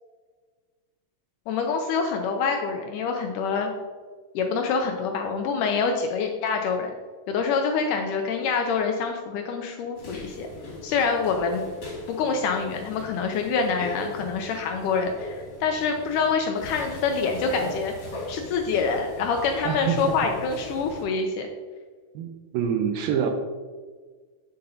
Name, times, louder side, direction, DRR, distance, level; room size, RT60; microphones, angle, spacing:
voice 1, 1.5-3.7 4.4-6.9 7.3-10.5 10.8-11.6 12.1-17.9 18.3-21.5, left 5 dB, 80° left, 3 dB, 1.9 m, -26 dB
sound 1, 10.0-21.0, left 2 dB, 50° left, 3.1 m, -40 dB
voice 2, 19.6-20.0 22.2-23.3, right 8 dB, 80° right, 4 dB, 2.3 m, -26 dB
7.7 x 6.7 x 2.7 m, 1.5 s
omnidirectional pair, 4.3 m